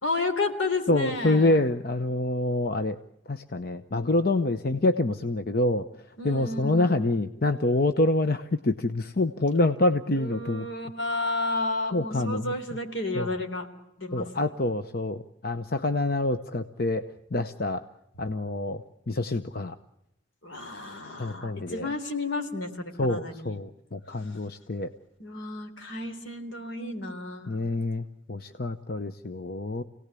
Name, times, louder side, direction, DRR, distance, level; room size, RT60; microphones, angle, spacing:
voice 1, 0.0-1.6 6.2-7.1 10.1-13.7 14.0-14.5 20.4-23.6 25.2-27.5, left 2 dB, 80° left, 5 dB, 3.8 m, -32 dB
voice 2, 0.9-3.0 3.3-5.8 6.2-10.7 11.9-12.5 13.1-13.3 14.1-17.0 17.3-17.8 18.2-18.8 19.1-19.7 21.2-21.9 23.0-24.9 27.5-29.8, left 2 dB, 50° left, 8 dB, 0.8 m, -26 dB
27.5 x 18.0 x 8.3 m, 0.86 s
head